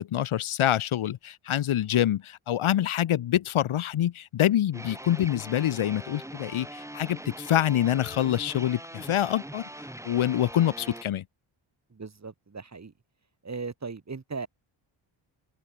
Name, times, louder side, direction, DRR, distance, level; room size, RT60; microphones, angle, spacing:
voice 1, 0.0-9.6 10.0-11.2, left 11 dB, 80° left, 2.0 m, -26 dB
sound 1, 4.7-11.0, right 1 dB, 5° right, 5.6 m, -42 dB
voice 2, 11.9-12.9 13.4-14.5, right 4 dB, 35° right, 7.4 m, -37 dB
cardioid pair, 100°, 49 cm